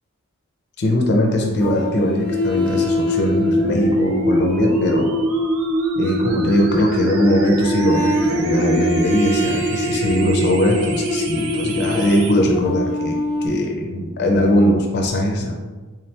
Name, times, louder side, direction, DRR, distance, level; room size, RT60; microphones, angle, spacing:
voice 1, 0.8-5.1 6.0-13.2 13.4-15.5, left 1 dB, 50° left, 1 dB, 0.5 m, -20 dB
sound 1, 1.6-6.6 7.6-13.5, equal, 5° left, 0.6 m, -27 dB
sound 2, 2.3-12.3, equal, 70° right, 0.5 m, -22 dB
3.6 x 3.2 x 2.8 m, 1.3 s
head